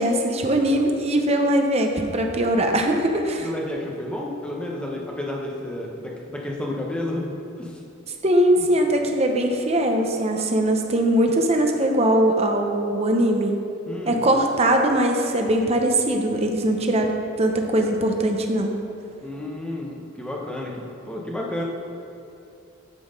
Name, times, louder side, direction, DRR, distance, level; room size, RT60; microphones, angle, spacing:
voice 1, 0.0-3.5 8.2-13.6 14.1-18.8, right 1 dB, 30° right, 3 dB, 0.8 m, -21 dB
voice 2, 3.4-7.3 7.6-7.8 13.9-14.2 19.2-21.6, left 1 dB, 5° left, -2 dB, 1.0 m, -31 dB
9.2 x 6.2 x 5.2 m, 2.8 s
head